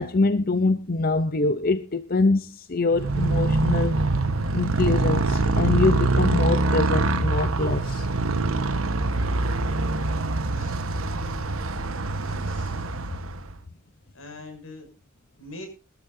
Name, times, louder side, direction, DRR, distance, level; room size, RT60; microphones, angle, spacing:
voice 1, 0.0-3.9 4.5-8.1, left 3 dB, 45° left, 0.7 m, -24 dB
Motorcycle, 2.9-13.6, right 2 dB, 85° right, 1.3 m, -24 dB
voice 2, 12.2-13.0 14.1-14.9 15.4-15.7, left 2 dB, 80° left, 6.4 m, -43 dB
21.0 x 13.0 x 2.7 m
head